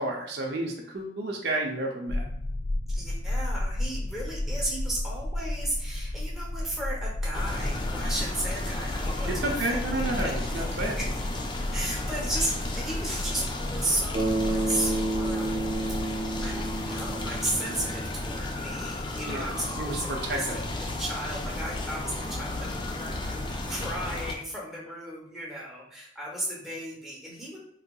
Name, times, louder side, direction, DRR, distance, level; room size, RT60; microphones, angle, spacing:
voice 1, 0.0-2.3 9.4-11.0 19.3-19.4 19.8-20.6, right 2 dB, 60° right, 0 dB, 0.6 m, -31 dB
sound 1, 2.1-17.8, left 1 dB, 75° left, 0.5 m, -33 dB
voice 2, 2.9-10.6 11.0-11.1 11.7-15.6 16.0-27.6, right 1 dB, ahead, -4 dB, 0.7 m, -35 dB
sound 2, 7.3-24.3, left 2 dB, 25° left, 0.3 m, -34 dB
Bass guitar, 14.1-18.5, right 2 dB, 40° right, 0.9 m, -31 dB
3.8 x 2.7 x 2.2 m, 0.72 s
head